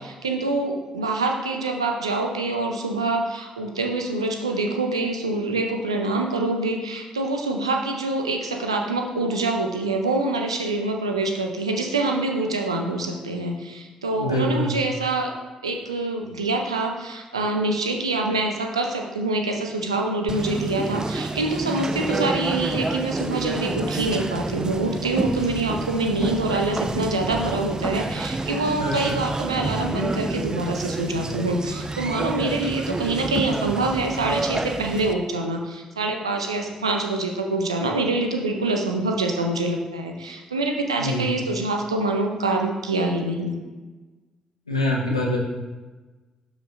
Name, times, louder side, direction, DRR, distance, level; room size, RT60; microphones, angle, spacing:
voice 1, 0.0-15.3 15.6-43.5, right 2 dB, 85° right, 3 dB, 0.6 m, -25 dB
voice 2, 14.2-14.7 28.8-29.1 41.0-41.2 44.7-45.4, left 1 dB, 90° left, -3 dB, 0.9 m, -24 dB
Conversation, 20.3-35.1, right 2 dB, 25° right, 0.6 m, -29 dB
11.5 x 5.1 x 2.5 m, 1.2 s
figure-of-eight pair, 40°, 3 cm